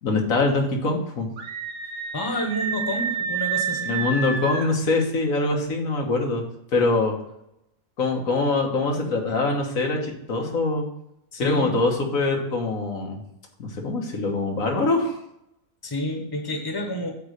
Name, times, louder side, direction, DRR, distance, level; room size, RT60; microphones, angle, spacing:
voice 1, 0.0-1.3 3.9-6.4 6.7-7.2 8.0-10.9 11.4-13.2 13.6-15.2, left 3 dB, 85° left, 1 dB, 1.7 m, -23 dB
Screaming, 1.4-4.7, right 6 dB, 65° right, 1.4 m, -29 dB
voice 2, 2.1-4.0 11.3-11.8 15.8-17.1, equal, 20° left, 3 dB, 1.1 m, -29 dB
8.7 x 3.1 x 6.5 m, 0.82 s
omnidirectional pair, 1.4 m